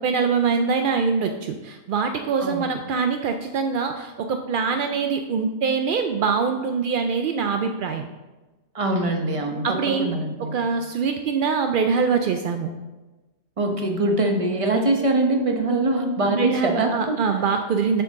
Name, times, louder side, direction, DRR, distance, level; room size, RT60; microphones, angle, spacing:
voice 1, 0.0-8.1 9.6-10.1 10.4-12.7 16.2-18.0, right 5 dB, 70° right, 6 dB, 0.5 m, -24 dB
voice 2, 8.7-10.8 13.6-17.4, right 2 dB, 30° right, 3 dB, 0.9 m, -23 dB
7.6 x 6.9 x 3.7 m, 1.2 s
omnidirectional pair, 1.4 m